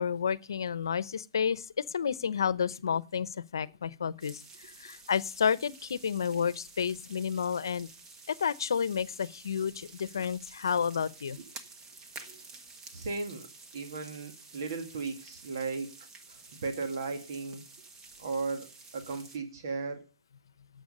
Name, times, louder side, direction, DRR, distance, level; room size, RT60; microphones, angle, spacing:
voice 1, 0.0-7.9 8.3-11.4, left 7 dB, 75° left, 0.8 m, -31 dB
sound 1, 4.2-19.4, right 3 dB, 20° right, 1.4 m, -51 dB
voice 2, 12.9-13.5 13.7-15.9 16.3-17.6 18.2-18.7 18.9-20.0, right 4 dB, 60° right, 1.9 m, -36 dB
11.5 x 7.9 x 5.3 m
hypercardioid pair, 150°, 2 cm